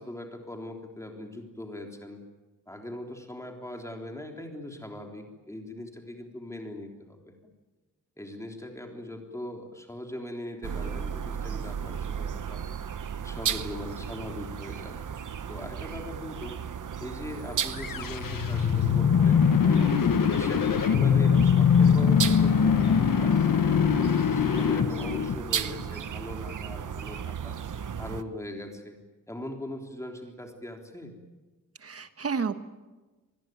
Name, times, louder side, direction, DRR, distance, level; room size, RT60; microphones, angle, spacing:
voice 1, 0.0-2.2 2.7-7.3 8.2-12.6 13.2-15.0 15.5-16.6 17.0-19.9 20.3-23.9 24.3-27.6 28.0-29.0 29.3-31.1, left 1 dB, 10° left, 3 dB, 3.4 m, -40 dB
sound 1, 10.6-28.2, right 8 dB, 70° right, 1.0 m, -35 dB
sound 2, 17.7-25.8, left 7 dB, 85° left, 1.2 m, -22 dB
voice 2, 31.8-32.5, right 5 dB, 45° right, 10 dB, 1.5 m, -31 dB
25.5 x 20.0 x 9.4 m, 1.2 s
wide cardioid pair, 160°, 32 cm